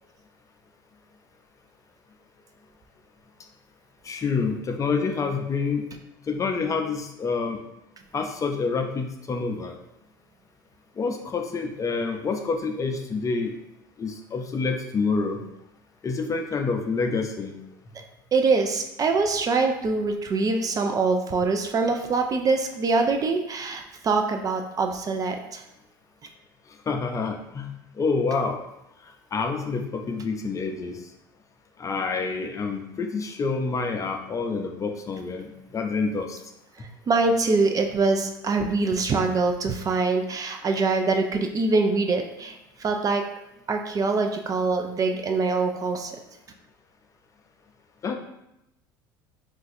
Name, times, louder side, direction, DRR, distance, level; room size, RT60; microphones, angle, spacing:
voice 1, 4.0-5.9 6.3-7.6 8.1-9.7 11.0-13.5 14.0-15.4 16.0-17.5 26.9-28.6 29.3-31.0 31.8-35.5 35.7-36.4 36.8-36.9 48.0-48.1, left 4 dB, 30° left, 4 dB, 0.5 m, -27 dB
voice 2, 18.3-25.6 37.1-42.5 42.8-43.2 43.7-46.1, right 3 dB, 35° right, 4 dB, 0.4 m, -24 dB
2.5 x 2.3 x 4.0 m, 0.86 s
hypercardioid pair, 80°, 11 cm